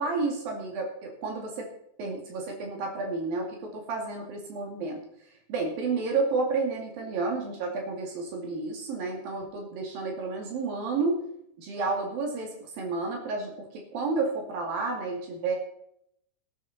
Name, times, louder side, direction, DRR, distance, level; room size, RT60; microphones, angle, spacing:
voice 1, 0.0-1.7 2.0-5.0 5.5-11.2 11.6-15.6, right 3 dB, 85° right, 1 dB, 4.2 m, -31 dB
19.5 x 10.5 x 4.2 m, 0.74 s
omnidirectional pair, 4.0 m